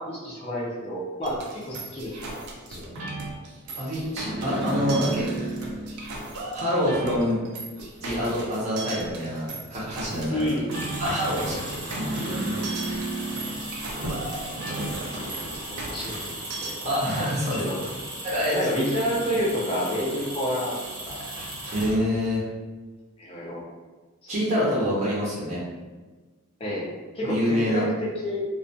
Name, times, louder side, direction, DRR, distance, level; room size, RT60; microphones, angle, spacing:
voice 1, 0.0-1.4 1.6-2.4 2.7-2.8 10.3-10.8 12.8-13.0 15.2-16.5 16.8-17.8 18.5-20.8 21.1-21.3 23.2-23.6 24.2-24.3 26.6-26.9 27.1-28.5, equal, 25° left, -5 dB, 0.4 m, -29 dB
sound 1, 1.2-16.7, right 2 dB, 90° right, 0.5 m, -34 dB
voice 2, 3.8-5.3 6.5-7.4 8.0-9.4 9.7-10.5 10.9-12.2 16.8-17.6 18.2-18.6 21.7-22.4 24.3-25.6 27.2-27.8, equal, 30° right, -8 dB, 0.6 m, -26 dB
sound 2, 10.5-22.3, right 1 dB, 65° right, 0.8 m, -36 dB
sound 3, 13.9-18.5 18.9-19.0, equal, 85° left, 0.7 m, -42 dB
2.2 x 2.2 x 2.6 m, 1.3 s
head